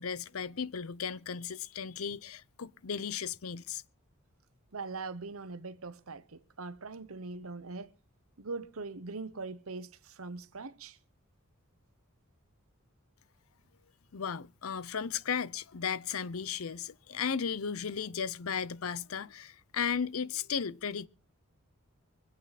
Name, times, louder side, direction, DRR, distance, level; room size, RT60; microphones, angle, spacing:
voice 1, 0.0-3.8 14.1-21.1, left 7 dB, 75° left, 0.7 m, -35 dB
voice 2, 4.7-7.9 8.4-11.0, right 3 dB, 75° right, 1.0 m, -41 dB
24.5 x 8.7 x 4.1 m
head